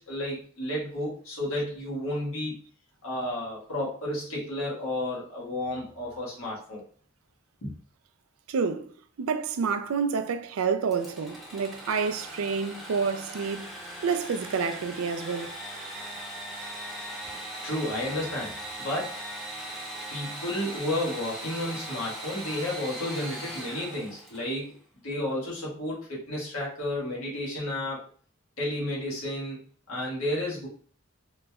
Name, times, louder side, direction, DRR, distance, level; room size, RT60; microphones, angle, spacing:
voice 1, 0.0-2.6 3.0-6.8 7.6-7.7 17.6-19.2 20.1-24.8 25.0-28.0 28.6-29.6 29.9-30.7, left 1 dB, 90° left, 1.5 m, -32 dB
voice 2, 8.5-8.9 9.2-13.7 14.0-15.6, right 5 dB, 80° right, 0.4 m, -28 dB
Engine / Sawing, 10.9-24.6, right 1 dB, ahead, 0.8 m, -39 dB
3.8 x 3.0 x 2.3 m
head